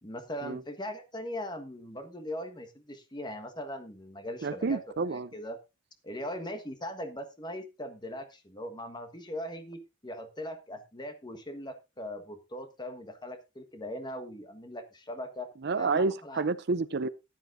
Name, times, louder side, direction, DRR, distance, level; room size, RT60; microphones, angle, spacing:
voice 1, 0.0-4.8 5.1-5.6 6.0-15.5 15.8-16.5, left 1 dB, 20° left, 1.5 m, -40 dB
voice 2, 4.4-5.3 15.6-17.1, right 4 dB, 55° right, 0.6 m, -29 dB
14.5 x 10.5 x 2.7 m
head